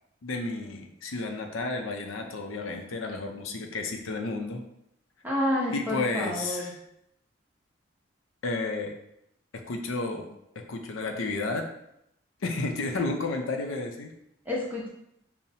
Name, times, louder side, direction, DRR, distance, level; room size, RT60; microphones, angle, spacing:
voice 1, 0.2-4.6 5.7-6.8 8.4-9.0 9.7-10.3 10.7-11.7 12.4-14.1, left 3 dB, 85° left, 4 dB, 0.5 m, -32 dB
voice 2, 5.2-6.7 14.5-14.9, left 1 dB, 10° right, -5 dB, 0.8 m, -29 dB
5.5 x 2.0 x 2.7 m, 0.78 s
head